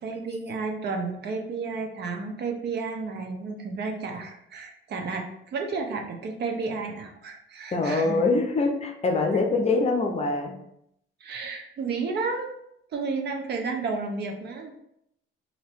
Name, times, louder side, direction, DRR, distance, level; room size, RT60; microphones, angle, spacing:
voice 1, 0.0-8.3 11.2-12.6 12.9-14.8, right 4 dB, 55° right, 3 dB, 0.8 m, -32 dB
voice 2, 7.7-10.5, left 3 dB, 30° left, 3 dB, 0.6 m, -24 dB
3.0 x 2.8 x 4.5 m, 0.75 s
cardioid pair, 110°, 21 cm